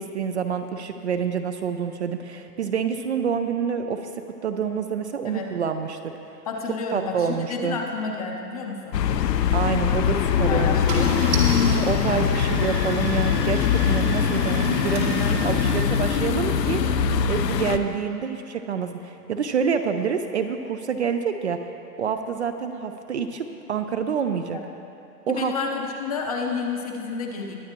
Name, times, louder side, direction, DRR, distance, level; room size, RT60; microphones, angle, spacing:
voice 1, 0.0-6.1 6.9-7.8 9.5-11.1 11.8-16.9 17.3-21.6 22.0-24.6 25.3-25.5, right 6 dB, 45° right, 8 dB, 0.5 m, -27 dB
voice 2, 6.5-9.0 10.5-11.3 15.2-15.5 24.5-24.6 25.3-27.5, left 4 dB, 25° left, 1 dB, 0.6 m, -30 dB
sound 1, 8.9-17.8, left 7 dB, 80° left, 0.8 m, -22 dB
Car / Engine starting, 9.8-10.0 10.6-10.7 10.9-15.8, right 4 dB, 80° right, 2.6 m, -35 dB
21.0 x 8.5 x 2.9 m, 2.8 s
hypercardioid pair, 160°, 49 cm